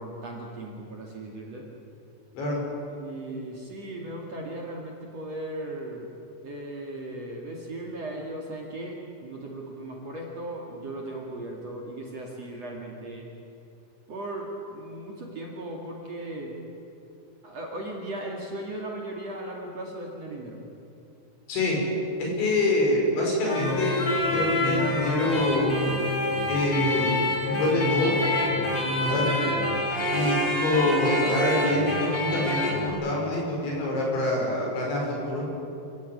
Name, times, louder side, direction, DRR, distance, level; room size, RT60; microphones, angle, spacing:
voice 1, 0.0-1.6 3.0-6.1 6.4-13.3 14.1-16.6 17.4-20.6 29.4-29.6, right 1 dB, 45° right, -1 dB, 2.8 m, -37 dB
voice 2, 21.5-21.8 22.2-24.0 24.3-25.7 26.5-28.1 29.0-29.2 30.1-35.5, left 1 dB, 75° left, -2 dB, 8.1 m, -26 dB
sound 1, 23.4-32.9, left 1 dB, 25° left, 3.9 m, -26 dB
27.0 x 16.0 x 9.6 m, 2.7 s
omnidirectional pair, 5.3 m